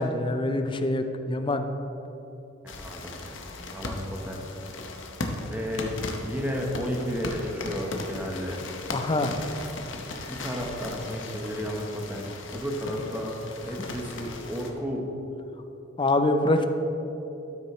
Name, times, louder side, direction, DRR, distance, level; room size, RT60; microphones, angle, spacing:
voice 1, 0.0-1.7 8.9-9.3 16.0-16.7, left 2 dB, 25° left, 7 dB, 0.5 m, -25 dB
voice 2, 2.6-3.1 3.7-4.4 5.5-8.6 10.3-13.4 13.6-15.1, equal, 10° right, 0 dB, 1.0 m, -32 dB
sound 1, 2.7-14.7, left 2 dB, 75° left, 0.8 m, -37 dB
12.5 x 6.3 x 3.1 m, 3.0 s
head